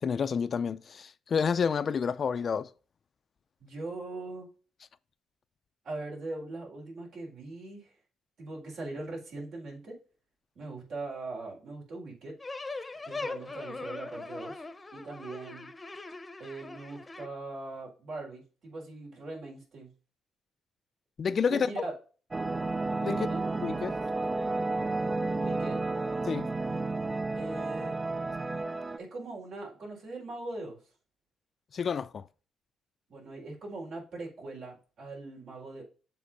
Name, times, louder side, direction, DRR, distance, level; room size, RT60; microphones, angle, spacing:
voice 1, 0.0-2.7 21.2-21.7 23.0-23.2 23.6-24.0 26.2-26.5 31.7-32.3, left 6 dB, 45° left, 0.5 m, -29 dB
voice 2, 3.6-4.5 5.8-7.9 8.4-10.0 10.5-12.3 13.0-14.6 14.9-15.7 16.4-19.9 21.5-21.9 23.1-23.4 25.3-25.8 27.3-28.0 29.0-30.8 33.1-35.8, right 2 dB, 65° right, 4.1 m, -40 dB
sound 1, 12.4-17.3, left 3 dB, 20° left, 0.8 m, -40 dB
sound 2, 22.3-29.0, right 3 dB, 25° right, 0.4 m, -31 dB
7.4 x 3.8 x 5.6 m
cardioid pair, 90°, 0 cm